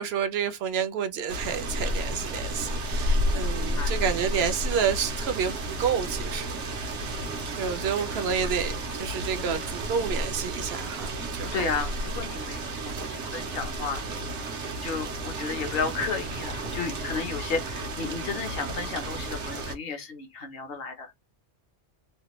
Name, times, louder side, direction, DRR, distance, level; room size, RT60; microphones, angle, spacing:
voice 1, 0.0-7.0 7.6-11.7, right 7 dB, 65° right, 0.8 m, -30 dB
sound 1, 1.3-19.8, right 1 dB, 90° right, 1.1 m, -32 dB
voice 2, 3.6-4.0 6.9-7.5 8.0-8.1 9.4-9.7 11.5-14.0 14.8-21.1, left 5 dB, 60° left, 1.0 m, -33 dB
3.3 x 2.2 x 3.0 m
omnidirectional pair, 1.2 m